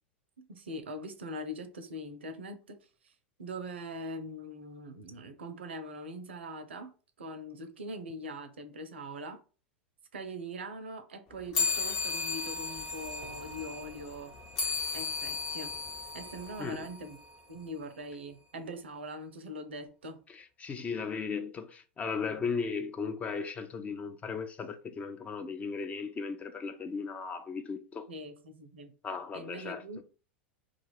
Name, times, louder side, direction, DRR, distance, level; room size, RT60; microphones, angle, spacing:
voice 1, 0.5-2.8 3.0-3.1 3.4-6.9 7.2-9.4 10.1-14.3 14.9-15.8 16.1-17.2 17.5-20.2 22.3-22.4 28.1-28.9 29.3-30.0, equal, 80° right, 0.5 m, -42 dB
sound 1, 11.5-17.4, left 4 dB, 45° left, 1.0 m, -35 dB
voice 2, 20.3-28.1 29.0-29.8, left 5 dB, 25° left, 0.4 m, -36 dB
2.4 x 2.3 x 3.2 m
hypercardioid pair, 90°, 6 cm